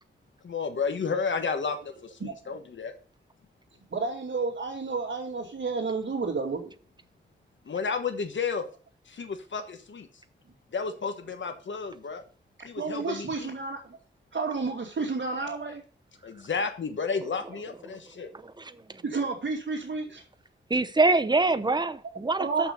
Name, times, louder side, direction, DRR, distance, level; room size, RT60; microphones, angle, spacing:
voice 1, 0.4-2.9 7.6-8.6 9.1-10.1 10.7-12.2 12.6-13.5 16.2-18.3, left 5 dB, 70° left, 1.3 m, -32 dB
voice 2, 3.9-6.7 12.8-14.0 14.3-15.8 19.0-20.2 22.4-22.7, right 4 dB, 70° right, 2.5 m, -31 dB
voice 3, 18.3-19.0 20.7-22.7, right 3 dB, 20° right, 0.8 m, -25 dB
6.9 x 6.0 x 6.9 m
cardioid pair, 75°, 20 cm